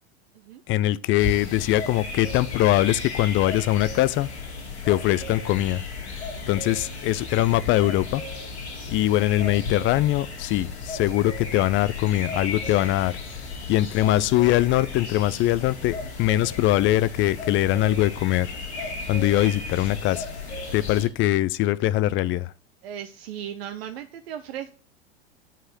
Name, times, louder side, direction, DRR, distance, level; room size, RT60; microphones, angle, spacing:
voice 1, 0.7-4.3 4.8-5.8 6.5-8.2 8.9-13.2 13.7-20.3 20.7-22.5, left 15 dB, 35° left, 0.6 m, -22 dB
sound 1, 1.2-21.1, left 3 dB, 75° left, 3.3 m, -35 dB
voice 2, 22.8-24.7, right 10 dB, 65° right, 0.9 m, -37 dB
9.0 x 4.8 x 7.6 m
figure-of-eight pair, 80°, 33 cm